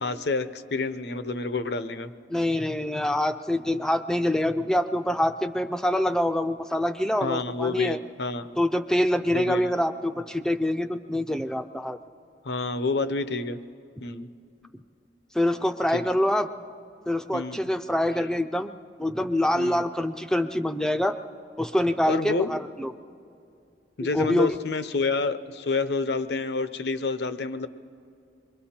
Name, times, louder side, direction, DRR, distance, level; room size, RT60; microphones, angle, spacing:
voice 1, 0.0-2.1 7.2-8.5 9.3-9.7 12.4-13.6 14.0-14.3 15.9-16.0 17.3-17.6 19.6-19.8 22.1-22.5 24.0-27.7, left 3 dB, 70° left, 12 dB, 0.7 m, -28 dB
voice 2, 2.3-8.0 8.6-12.0 15.3-16.5 17.1-18.7 19.0-21.2 21.6-22.9 24.1-24.6, left 1 dB, 5° left, 8 dB, 0.4 m, -25 dB
27.5 x 22.5 x 4.4 m, 2.5 s
head